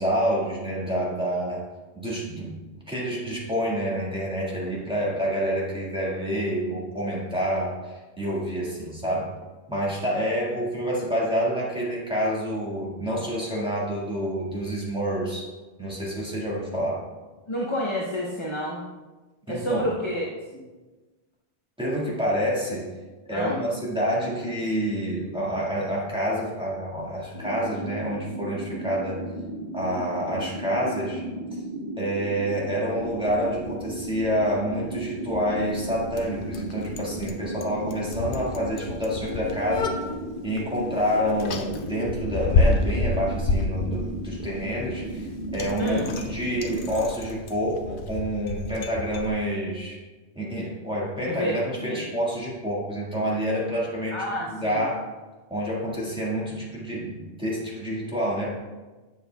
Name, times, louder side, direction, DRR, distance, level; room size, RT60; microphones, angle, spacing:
voice 1, 0.0-1.6 1.9-2.5 2.9-9.3 9.7-15.4 15.8-17.0 19.5-19.9 21.8-22.9 23.2-29.2 29.7-31.2 32.0-39.9 40.4-45.3 45.5-50.0 50.3-55.0 55.5-58.6, equal, 5° right, -6 dB, 1.6 m, -28 dB
voice 2, 17.5-18.8 19.5-20.3 20.5-20.6 23.3-23.6 45.8-46.1 51.2-51.6 51.8-52.0 54.1-54.8, equal, 30° left, -3 dB, 0.7 m, -29 dB
sound 1, 27.3-46.9, right 1 dB, 55° right, 1.1 m, -35 dB
Bicycle, 33.0-49.3, left 3 dB, 60° left, 0.7 m, -30 dB
8.0 x 7.2 x 2.2 m, 1.2 s
omnidirectional pair, 1.1 m